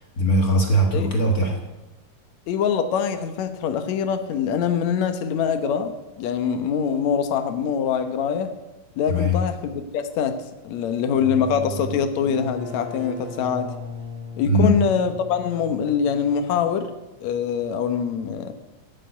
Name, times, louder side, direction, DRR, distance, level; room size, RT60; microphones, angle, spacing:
voice 1, 0.2-1.6 9.1-9.4 14.4-14.7, equal, 40° left, 2 dB, 1.3 m, -20 dB
voice 2, 2.5-5.9 6.2-8.5 9.0-10.4 10.6-13.7 14.4-16.9 17.2-18.5, left 7 dB, 65° left, 8 dB, 2.2 m, -24 dB
sound 1, 11.1-16.6, equal, 45° right, 3.3 m, -37 dB
14.5 x 7.3 x 9.2 m, 1.0 s
omnidirectional pair, 3.8 m